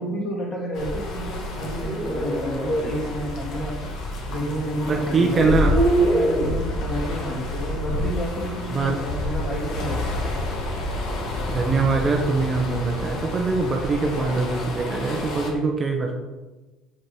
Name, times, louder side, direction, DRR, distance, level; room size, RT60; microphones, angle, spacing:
voice 1, 0.0-3.7 4.3-10.4, equal, 25° left, -3 dB, 3.0 m, -30 dB
sound 1, 0.7-15.5, left 2 dB, 55° left, 2.1 m, -29 dB
sound 2, 1.7-2.9 4.4-4.5 5.2-6.5, right 2 dB, 5° left, 1.9 m, -24 dB
voice 2, 4.9-5.8 8.7-9.0 11.5-16.1, right 4 dB, 20° right, 1 dB, 1.0 m, -23 dB
8.4 x 7.9 x 4.5 m, 1.2 s
cardioid pair, 155°, 0 cm